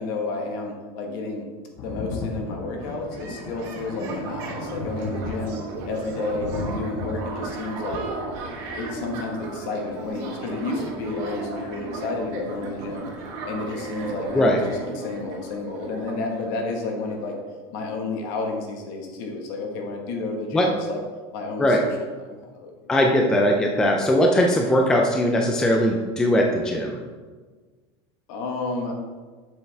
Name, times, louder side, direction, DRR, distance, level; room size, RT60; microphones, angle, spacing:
voice 1, 0.0-1.5 1.8-8.0 8.8-13.1 13.4-17.4 17.7-21.0 21.3-21.9 22.2-22.7 28.3-28.9, left 3 dB, 55° left, 2 dB, 1.4 m, -31 dB
Thunder, 1.8-9.1 10.2-10.3, left 3 dB, 40° left, 0.8 m, -36 dB
sound 1, 2.6-17.2, right 3 dB, 50° right, 1.6 m, -35 dB
voice 2, 22.9-27.0, left 1 dB, 5° left, 1 dB, 0.4 m, -20 dB
7.5 x 7.0 x 3.4 m, 1.4 s
cardioid pair, 180°, 14 cm